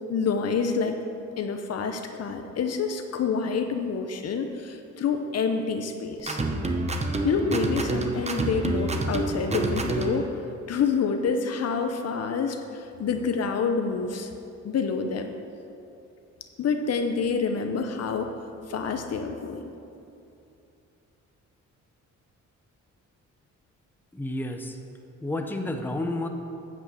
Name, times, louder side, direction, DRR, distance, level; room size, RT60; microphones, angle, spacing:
voice 1, 0.1-1.0 1.4-6.4 7.2-10.3 10.7-14.3 14.6-15.3 16.6-18.4 18.7-19.7, left 5 dB, 55° left, 6 dB, 0.8 m, -27 dB
sound 1, 6.2-10.3, right 2 dB, 20° right, 0.8 m, -28 dB
voice 2, 24.1-24.8 25.2-26.3, left 1 dB, 5° left, 4 dB, 0.8 m, -30 dB
9.1 x 5.5 x 6.9 m, 2.7 s
cardioid pair, 90°, 30 cm